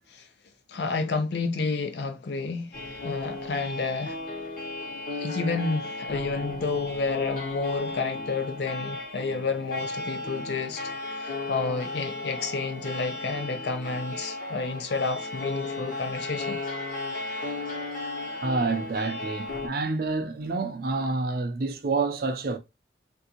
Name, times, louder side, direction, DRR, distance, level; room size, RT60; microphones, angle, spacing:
voice 1, 0.7-4.2 5.1-16.6, left 4 dB, 65° left, 0.5 m, -30 dB
sound 1, 2.7-19.7, left 2 dB, 45° left, 1.1 m, -35 dB
voice 2, 18.4-22.6, right 3 dB, 50° right, 0.5 m, -28 dB
3.4 x 2.6 x 2.8 m
head